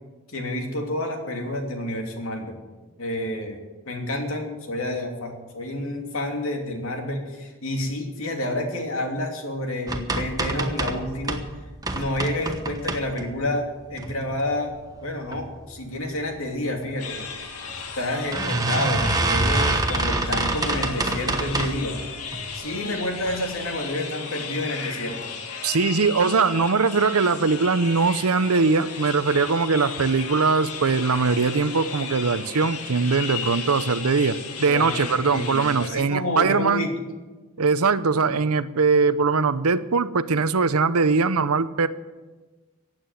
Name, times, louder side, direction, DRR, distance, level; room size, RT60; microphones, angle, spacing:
voice 1, 0.3-2.5 3.0-3.6 3.9-11.4 11.9-14.7 15.0-17.2 17.9-22.0 22.5-25.2 34.7-35.0 35.3-36.9, left 1 dB, 70° left, 2 dB, 2.8 m, -29 dB
sound 1, 9.9-11.5 11.8-13.4 13.9-14.5 15.0-15.4 15.7-15.8 16.1-16.2 17.2-17.3 17.7-17.8 18.3-21.9 22.3-22.8 23.2-23.4 23.7-23.8, right 2 dB, 15° right, 1.0 m, -26 dB
sound 2, 17.0-35.9, left 5 dB, 90° left, 2.1 m, -35 dB
voice 2, 25.6-36.9 37.6-41.9, right 4 dB, 85° right, 14 dB, 0.7 m, -21 dB
15.5 x 9.0 x 9.0 m, 1.3 s
head